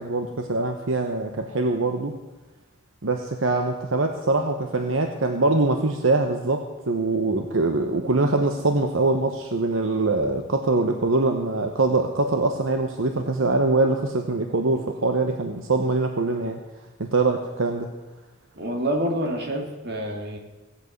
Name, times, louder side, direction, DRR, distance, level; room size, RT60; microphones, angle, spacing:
voice 1, 0.0-2.2 3.0-16.6 17.0-17.9, right 2 dB, 80° right, 5 dB, 1.0 m, -23 dB
voice 2, 18.5-20.4, right 1 dB, 55° right, 2 dB, 2.4 m, -27 dB
17.0 x 8.2 x 7.9 m, 1.1 s
head